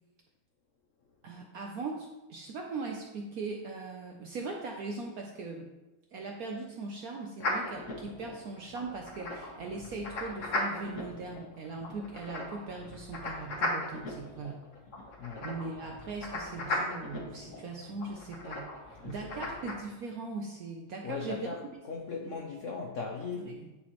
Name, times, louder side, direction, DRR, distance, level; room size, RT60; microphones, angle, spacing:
voice 1, 1.2-5.7 6.1-14.6 15.4-21.5 22.2-22.4 23.3-23.7, right 3 dB, 70° right, 1 dB, 0.8 m, -40 dB
sound 1, 7.4-19.7, left 2 dB, 45° left, 1.2 m, -37 dB
voice 2, 19.0-19.4 21.0-21.6 21.9-23.6, left 5 dB, 75° left, 1 dB, 0.7 m, -38 dB
10.5 x 4.2 x 3.0 m, 1.1 s
omnidirectional pair, 2.2 m